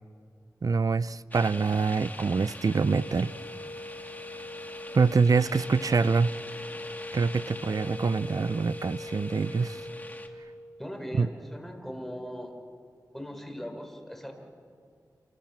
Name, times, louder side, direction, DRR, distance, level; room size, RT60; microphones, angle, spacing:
voice 1, 0.6-3.3 4.9-6.3 7.1-9.9 11.2-11.3, right 4 dB, 65° right, 0.6 m, -25 dB
sound 1, 1.3-10.3, left 1 dB, 25° left, 2.6 m, -44 dB
sound 2, 2.7-10.9, left 2 dB, 75° left, 1.1 m, -42 dB
voice 2, 10.8-12.5 13.1-14.3, equal, 5° left, 5.2 m, -39 dB
28.0 x 25.5 x 7.4 m
cardioid pair, 50°, 7 cm